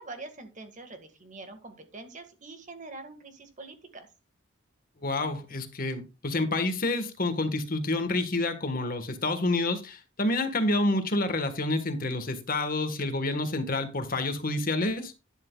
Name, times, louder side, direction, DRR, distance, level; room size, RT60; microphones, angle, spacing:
voice 1, 0.0-4.1, right 3 dB, 35° right, 7 dB, 1.8 m, -44 dB
voice 2, 5.0-15.1, left 2 dB, 45° left, 8 dB, 1.5 m, -28 dB
12.0 x 10.5 x 2.4 m, 0.29 s
head